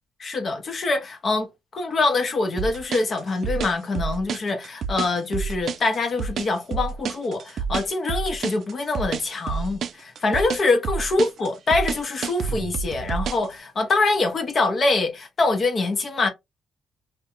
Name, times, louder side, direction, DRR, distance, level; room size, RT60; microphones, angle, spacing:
voice 1, 0.2-16.3, left 3 dB, 45° left, 0.6 m, -24 dB
sound 1, 2.6-13.5, right 6 dB, 60° right, 0.3 m, -29 dB
2.4 x 2.1 x 2.8 m
cardioid pair, 90°, 0 cm